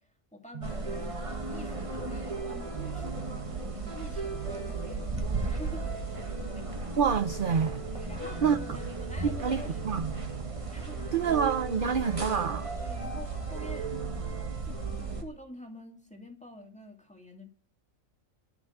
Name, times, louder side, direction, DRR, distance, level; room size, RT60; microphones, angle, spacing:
voice 1, 0.0-6.3 7.9-10.4 10.7-11.1 12.8-14.0 14.6-17.5, left 1 dB, 5° left, 2.1 m, -48 dB
sound 1, 0.6-15.2, right 3 dB, 25° right, 1.4 m, -35 dB
voice 2, 6.9-7.8 8.4-8.6 9.2-10.1 11.1-12.7, right 6 dB, 45° right, 0.8 m, -27 dB
12.0 x 6.1 x 7.7 m
omnidirectional pair, 1.4 m